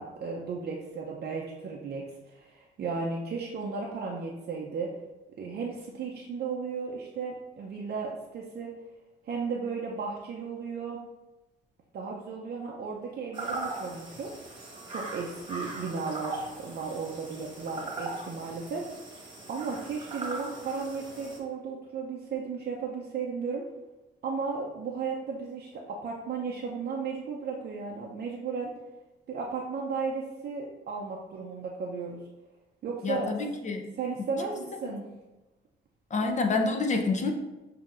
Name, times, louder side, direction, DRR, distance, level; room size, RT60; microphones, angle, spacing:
voice 1, 0.0-4.9 5.4-8.7 9.2-11.0 11.9-14.4 14.9-18.9 19.5-23.6 24.2-28.7 29.3-32.2 32.8-33.3 34.0-35.1 36.2-36.3, right 5 dB, 50° right, -2 dB, 0.6 m, -35 dB
sound 1, 13.3-21.4, right 2 dB, 25° right, 1.2 m, -40 dB
voice 2, 33.0-33.8 34.8-35.0 36.1-37.3, left 3 dB, 35° left, 4 dB, 0.7 m, -28 dB
7.1 x 2.8 x 2.5 m, 1.1 s
cardioid pair, 90°, 20 cm